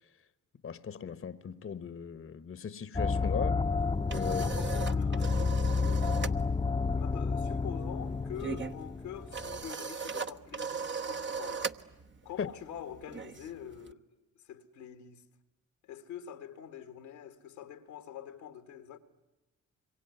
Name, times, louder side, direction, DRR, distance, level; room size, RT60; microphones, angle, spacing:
voice 1, 0.6-3.6 4.1-4.4 12.4-12.5, left 7 dB, 40° left, 1.1 m, -38 dB
sound 1, 2.9-9.7, left 4 dB, 15° left, 0.9 m, -30 dB
voice 2, 3.4-3.8 4.2-6.4 6.8-11.7 12.2-14.0 14.3-15.3 15.8-19.0, left 9 dB, 85° left, 1.8 m, -46 dB
sound 2, 3.7-6.4 6.7-7.0 7.2-13.9, right 5 dB, 35° right, 1.0 m, -39 dB
26.0 x 23.0 x 9.6 m
hypercardioid pair, 45°, 33 cm